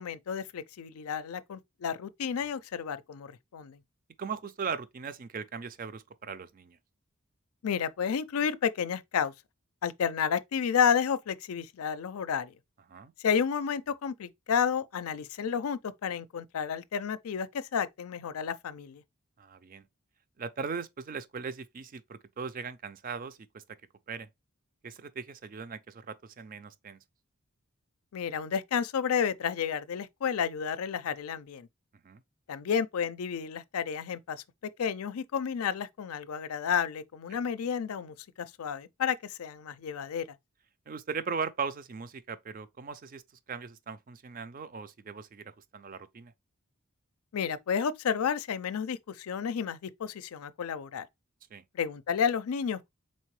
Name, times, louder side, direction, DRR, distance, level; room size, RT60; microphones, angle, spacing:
voice 1, 0.0-3.8 7.6-9.3 9.8-12.5 13.2-19.0 28.1-31.7 32.5-34.4 34.8-40.2 47.3-51.1 51.7-52.9, left 7 dB, 90° left, 0.4 m, -31 dB
voice 2, 4.2-6.8 12.9-13.1 19.4-19.9 20.4-23.6 24.1-24.3 24.8-27.0 32.0-32.2 37.3-37.4 40.9-43.2 43.5-46.3 51.5-51.6, right 5 dB, 40° right, 0.4 m, -39 dB
4.2 x 3.6 x 3.1 m
head